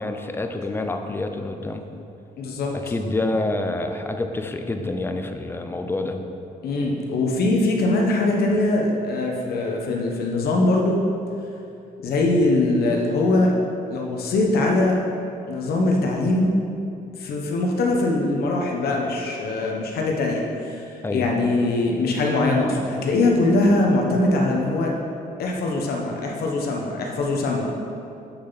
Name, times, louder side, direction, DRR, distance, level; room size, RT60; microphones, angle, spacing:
voice 1, 0.0-1.8 2.8-6.2 21.0-21.3, left 2 dB, 15° left, 6 dB, 0.5 m, -27 dB
voice 2, 2.4-2.7 6.6-11.0 12.0-13.5 13.9-15.0 15.5-16.5 17.2-20.8 21.1-24.9 25.4-27.7, left 2 dB, 80° left, 0 dB, 1.2 m, -22 dB
7.8 x 6.7 x 4.0 m, 2.6 s
cardioid pair, 145°, 16 cm